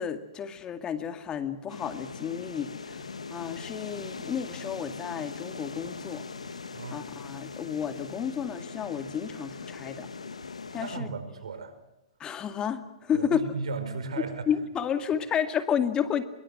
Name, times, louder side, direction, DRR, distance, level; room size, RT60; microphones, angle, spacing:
voice 1, 0.0-6.2 6.9-10.1 10.7-11.1 12.2-13.4 14.5-16.2, left 8 dB, 25° left, 9 dB, 2.1 m, -31 dB
sound 1, 1.7-11.0, left 4 dB, 90° left, 1.6 m, -41 dB
voice 2, 10.8-11.8 13.1-14.5, right 4 dB, 75° right, 10 dB, 5.0 m, -35 dB
25.5 x 23.0 x 7.7 m, 0.94 s
hypercardioid pair, 115°, 3 cm